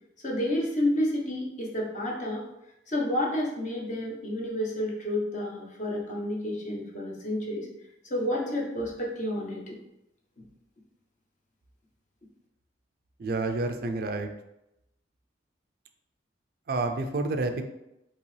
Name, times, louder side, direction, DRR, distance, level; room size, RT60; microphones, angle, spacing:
voice 1, 0.2-2.4 2.9-7.7 8.0-9.7, left 1 dB, 45° left, -3 dB, 1.1 m, -30 dB
voice 2, 13.2-14.3 16.7-17.6, right 3 dB, 55° right, 6 dB, 0.4 m, -29 dB
5.2 x 2.9 x 3.3 m, 0.89 s
head